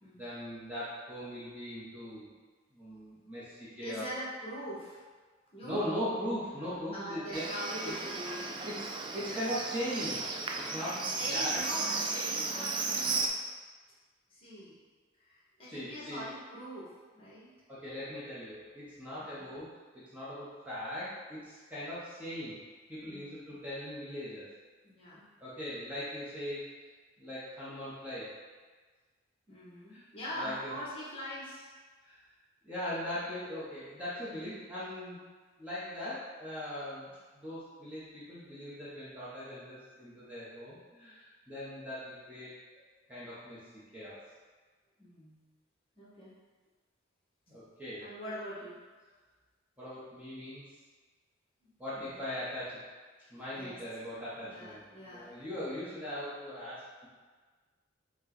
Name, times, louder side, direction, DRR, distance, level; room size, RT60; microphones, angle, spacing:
voice 1, 0.2-2.3 2.7-4.0 5.6-7.4 8.6-10.2 10.7-11.0 11.3-11.6 15.7-16.2 17.7-19.7 19.9-22.6 22.9-24.5 25.4-26.6 27.2-28.3 29.9-30.0 30.3-30.7 32.0-32.1 32.6-35.2 35.6-42.5 43.1-43.6 43.9-44.2 47.5-48.0 49.8-50.6 51.8-52.8 53.3-57.1, equal, 10° right, -11 dB, 0.9 m, -39 dB
voice 2, 3.8-5.0 5.5-5.8 6.6-8.5 11.1-13.3 14.3-14.7 15.2-17.5 19.2-19.4 23.1-23.6 24.8-25.2 29.5-31.7 45.0-45.4 46.0-46.3 48.0-48.8 51.9-52.2 53.5-53.8 54.4-55.3, equal, 30° left, -8 dB, 1.3 m, -43 dB
Livestock farm animals working animals, 7.3-13.3, right 3 dB, 25° right, 0.3 m, -34 dB
5.3 x 2.3 x 4.0 m, 1.4 s
head